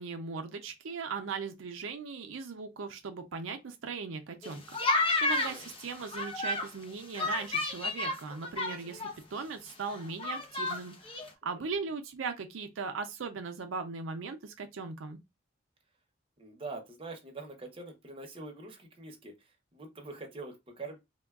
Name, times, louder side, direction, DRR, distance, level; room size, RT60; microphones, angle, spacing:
voice 1, 0.0-15.2, right 5 dB, 80° right, 0.5 m, -39 dB
sound 1, 4.4-6.7 7.1-9.1 9.4-9.5 9.7-10.8 11.1-11.3, left 2 dB, 30° left, 0.6 m, -31 dB
voice 2, 11.4-11.9 16.4-21.0, right 3 dB, 30° right, 0.7 m, -45 dB
3.5 x 2.2 x 2.3 m
head